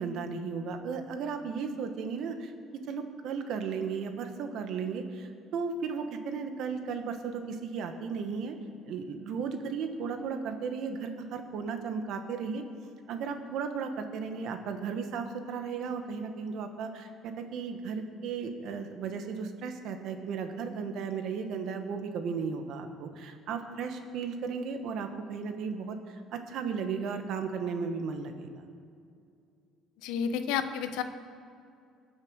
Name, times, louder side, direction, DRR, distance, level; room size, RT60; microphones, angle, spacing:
voice 1, 0.0-2.5 2.9-8.5 8.8-12.6 13.1-28.5, right 5 dB, 60° right, 6 dB, 1.6 m, -35 dB
voice 2, 30.0-31.0, left 7 dB, 85° left, 9 dB, 1.1 m, -30 dB
22.0 x 7.4 x 6.6 m, 2.4 s
cardioid pair, 135°, 0 cm